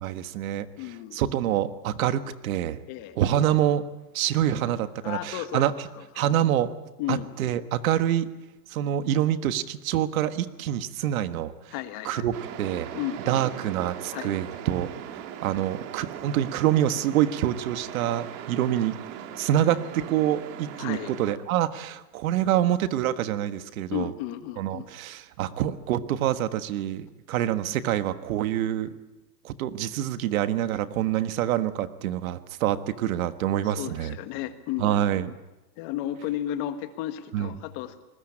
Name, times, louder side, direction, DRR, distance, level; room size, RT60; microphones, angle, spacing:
voice 1, 0.0-0.7 1.1-2.8 3.2-3.8 4.1-5.7 6.1-6.8 7.1-8.3 8.7-11.7 12.0-12.9 13.3-14.9 15.4-19.0 19.4-24.1 24.6-28.9 29.4-34.2 34.8-35.3 37.3-37.5, right 11 dB, 55° right, 11 dB, 1.5 m, -26 dB
voice 2, 0.8-1.2 2.9-3.2 5.0-5.6 6.0-6.3 7.0-7.3 11.7-12.3 12.9-13.6 14.1-14.6 20.8-21.1 23.9-24.9 33.6-35.1 35.8-38.0, left 12 dB, 35° left, 9 dB, 1.6 m, -34 dB
sound 1, 12.3-21.4, right 10 dB, 35° right, 1.9 m, -39 dB
27.0 x 20.5 x 8.8 m, 1.0 s
supercardioid pair, 160°, 48 cm